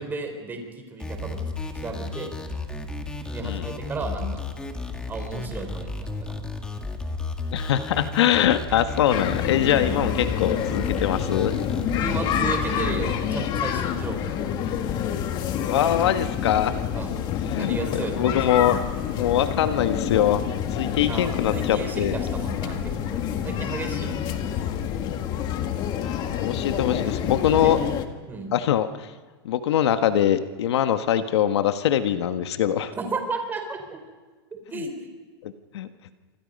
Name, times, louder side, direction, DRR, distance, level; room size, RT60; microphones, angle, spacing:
voice 1, 0.0-1.4 1.7-2.3 3.3-4.4 5.1-6.4 9.8-10.1 12.0-14.9 16.9-17.1 17.5-18.8 21.1-24.4 26.7-26.8 27.6-27.7 28.3-28.5 33.0-33.8 34.7-34.9, right 3 dB, 15° right, 5 dB, 4.2 m, -34 dB
sound 1, 1.0-13.0, left 3 dB, 5° left, 1.9 m, -33 dB
voice 2, 7.5-10.1 10.4-11.5 15.7-16.8 17.5-17.8 18.2-18.8 19.1-20.4 20.7-22.2 26.4-27.8 28.5-29.1 29.4-32.9 35.4-35.9, left 10 dB, 80° left, 9 dB, 1.5 m, -23 dB
sound 2, 9.1-28.1, left 9 dB, 30° left, 1.7 m, -28 dB
28.0 x 26.0 x 5.4 m, 1.3 s
supercardioid pair, 155°, 14 cm